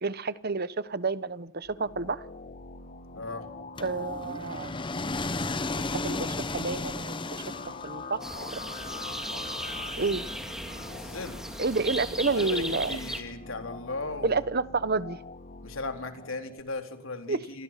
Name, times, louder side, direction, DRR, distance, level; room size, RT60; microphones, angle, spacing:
voice 1, 0.0-2.2 3.8-4.8 5.8-7.4 7.8-8.2 8.5-8.6 10.0-10.2 11.6-12.9 14.2-15.2 17.3-17.4, right 4 dB, 50° right, 16 dB, 1.0 m, -29 dB
sound 1, 1.6-16.6, left 3 dB, 40° left, 1.8 m, -44 dB
voice 2, 3.1-3.5 10.9-11.4 12.4-14.4 15.6-17.6, left 3 dB, 70° left, 6 dB, 4.0 m, -37 dB
sound 2, 3.8-8.2, left 2 dB, 25° left, 1.0 m, -33 dB
sound 3, 8.2-13.2, equal, 5° right, 2.8 m, -37 dB
29.0 x 22.5 x 5.9 m, 0.68 s
head